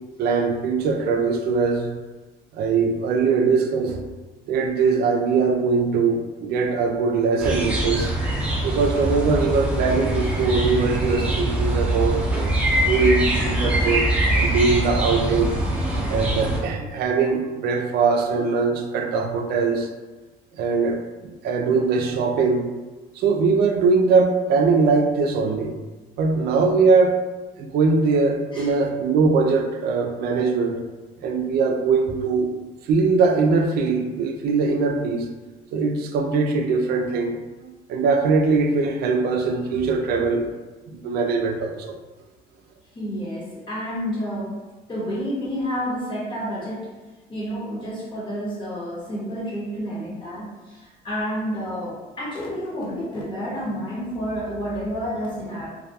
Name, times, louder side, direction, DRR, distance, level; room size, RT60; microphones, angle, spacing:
voice 1, 0.2-1.9 2.5-4.0 4.5-8.1 8.6-12.2 12.7-14.1 14.3-15.6 16.1-19.9 20.5-22.7 23.1-25.8 26.2-27.2 27.6-30.8 31.2-32.5 32.8-35.3 35.7-40.5 40.9-42.0, right 4 dB, 70° right, 4 dB, 0.4 m, -21 dB
sound 1, 7.4-16.6, right 1 dB, 10° right, 0.6 m, -23 dB
voice 2, 42.9-44.6 44.9-46.9 47.3-55.7, equal, 30° left, -6 dB, 0.9 m, -30 dB
2.3 x 2.2 x 2.7 m, 1.2 s
cardioid pair, 110°, 17 cm